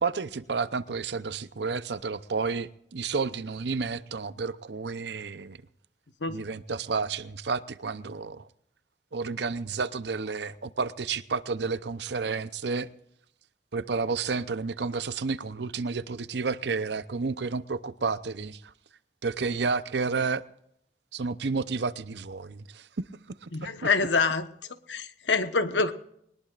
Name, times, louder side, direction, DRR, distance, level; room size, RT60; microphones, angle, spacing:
voice 1, 0.0-5.6 6.3-8.5 9.1-12.9 13.7-18.7 19.2-20.4 21.1-22.9 23.4-23.9, right 4 dB, 70° right, 0.7 m, -31 dB
voice 2, 23.5-24.5 24.9-25.9, left 4 dB, 80° left, 1.2 m, -26 dB
21.5 x 20.0 x 2.5 m
head